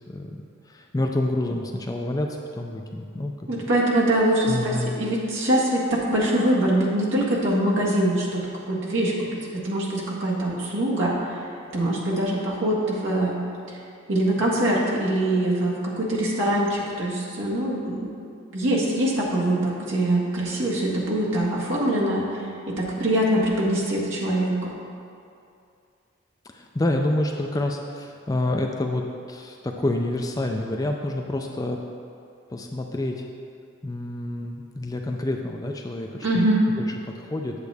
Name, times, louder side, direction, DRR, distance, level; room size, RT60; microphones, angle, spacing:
voice 1, 0.1-0.4 0.7-3.6 4.5-5.0 26.5-31.8 32.5-33.2 33.8-36.4 36.8-37.5, left 1 dB, 15° left, 2 dB, 0.4 m, -28 dB
voice 2, 3.5-11.4 11.7-13.4 13.7-13.8 14.1-18.1 18.5-24.7 36.2-36.6, right 1 dB, 65° right, -5 dB, 1.8 m, -23 dB
8.2 x 8.1 x 3.4 m, 2.5 s
head